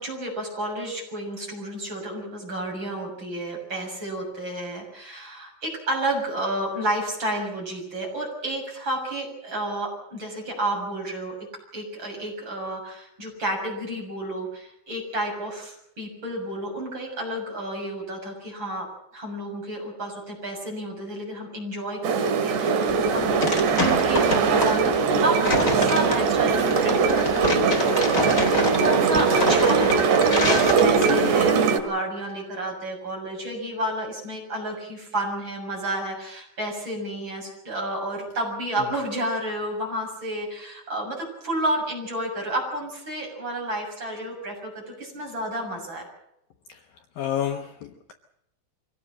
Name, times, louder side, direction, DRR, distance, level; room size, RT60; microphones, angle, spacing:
voice 1, 0.0-11.4 11.7-18.9 19.1-23.4 23.7-46.1, right 1 dB, 25° right, 0 dB, 7.5 m, -31 dB
sound 1, 22.0-31.8, right 5 dB, 75° right, 4.0 m, -21 dB
sound 2, 22.9-31.5, left 2 dB, 20° left, 3.3 m, -28 dB
voice 2, 46.7-48.1, left 10 dB, 65° left, 5 dB, 2.6 m, -31 dB
24.0 x 18.0 x 7.7 m, 0.77 s
omnidirectional pair, 4.9 m